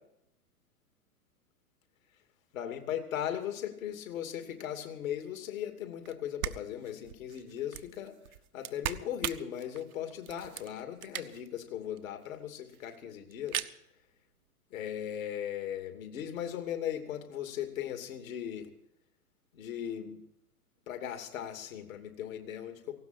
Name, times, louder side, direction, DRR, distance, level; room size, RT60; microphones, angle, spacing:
voice 1, 2.5-8.2 8.5-13.7 14.7-18.7 19.5-20.2 20.9-22.9, left 10 dB, 60° left, 6 dB, 2.8 m, -38 dB
sound 1, 6.1-6.2 6.4-11.6 12.0-12.1 12.2-12.3 12.5-13.0 13.3-13.7, right 10 dB, 65° right, 1.0 m, -39 dB
18.5 x 16.5 x 4.4 m, 0.79 s
figure-of-eight pair, 105°, 47 cm